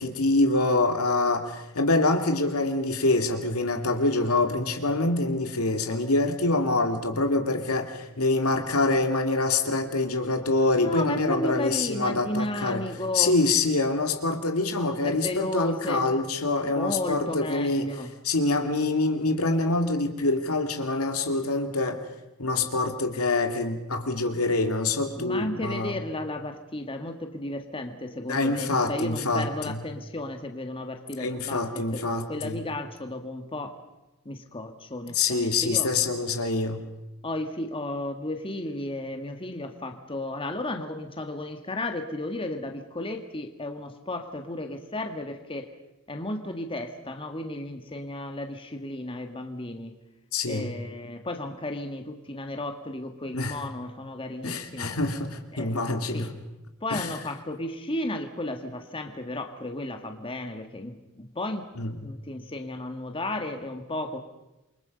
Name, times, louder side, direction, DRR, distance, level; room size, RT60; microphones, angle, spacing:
voice 1, 0.0-12.8 13.1-17.9 18.2-22.0 22.4-26.0 28.3-29.8 31.2-32.6 35.1-36.8 50.3-50.7 53.3-53.6 54.4-56.3 56.9-57.1 61.8-61.9, left 2 dB, 85° left, 5 dB, 2.5 m, -25 dB
voice 2, 10.8-13.4 15.0-16.1 16.7-18.1 25.2-32.0 32.3-33.8 34.3-35.9 37.2-45.7 46.1-50.0 50.5-55.0 55.5-55.7 56.1-56.4 56.8-61.6 62.0-64.2, left 1 dB, 25° left, 5 dB, 1.8 m, -34 dB
28.0 x 24.0 x 5.3 m, 0.97 s
head